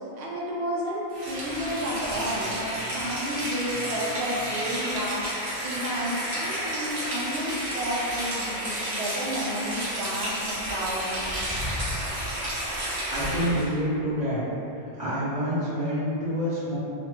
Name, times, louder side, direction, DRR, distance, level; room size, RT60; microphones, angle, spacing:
voice 1, 0.2-11.3, equal, 90° right, -4 dB, 0.9 m, -31 dB
Rain, 1.1-13.7, equal, 60° right, 0.9 m, -31 dB
voice 2, 13.1-14.4 15.0-16.8, equal, 40° right, -13 dB, 1.1 m, -27 dB
3.1 x 2.1 x 2.9 m, 2.8 s
omnidirectional pair, 1.1 m